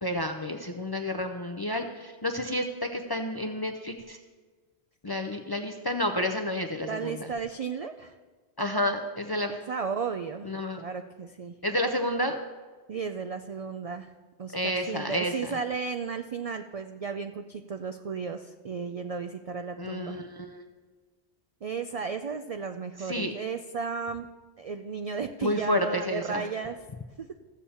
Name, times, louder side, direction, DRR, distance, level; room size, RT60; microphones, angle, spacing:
voice 1, 0.0-4.2 5.0-7.3 8.6-9.6 10.4-10.8 11.6-12.4 14.5-15.6 19.8-20.6 23.0-23.3 25.4-26.5, left 1 dB, 35° left, 5 dB, 0.4 m, -30 dB
voice 2, 6.8-8.2 9.5-11.5 12.9-14.1 14.4-20.2 21.6-24.3 24.6-26.8 27.2-27.3, right 5 dB, 70° right, 8 dB, 0.3 m, -34 dB
14.5 x 7.1 x 4.3 m, 1.4 s
omnidirectional pair, 1.1 m